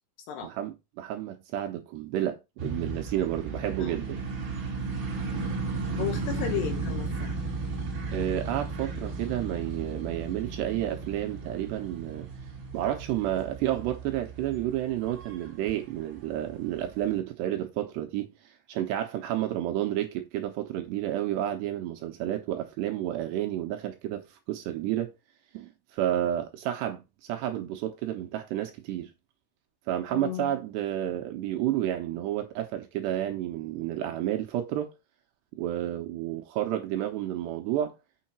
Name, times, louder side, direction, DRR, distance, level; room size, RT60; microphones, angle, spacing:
voice 1, 0.4-4.2 8.1-12.3 12.7-25.1 25.5-29.1 29.9-34.9 35.5-37.9, right 12 dB, 75° right, 2.7 m, -31 dB
sound 1, 2.6-17.1, right 3 dB, 40° right, 1.8 m, -35 dB
voice 2, 6.0-7.4 30.1-30.5, left 11 dB, 75° left, 2.7 m, -34 dB
6.9 x 6.4 x 4.3 m
omnidirectional pair, 5.5 m